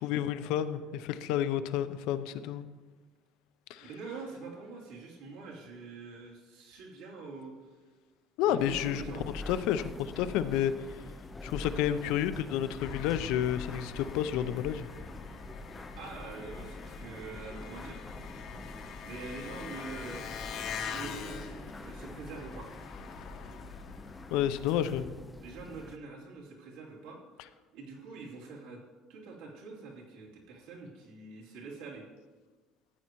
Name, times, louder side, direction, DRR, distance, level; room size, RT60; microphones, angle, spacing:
voice 1, 0.0-2.7 3.7-3.9 8.4-9.0 9.5-11.0 11.4-14.9 24.3-25.1, left 10 dB, 70° left, 12 dB, 0.5 m, -30 dB
voice 2, 3.8-7.8 8.4-9.2 16.0-18.0 19.0-20.3 20.9-22.7 25.4-28.8 29.1-32.0, right 4 dB, 80° right, -4 dB, 2.9 m, -45 dB
sound 1, 8.6-26.0, left 2 dB, 10° left, 0.4 m, -45 dB
Engine, 12.8-25.0, left 6 dB, 45° left, 0.8 m, -44 dB
14.0 x 9.3 x 3.0 m, 1.3 s
cardioid pair, 175°, 0 cm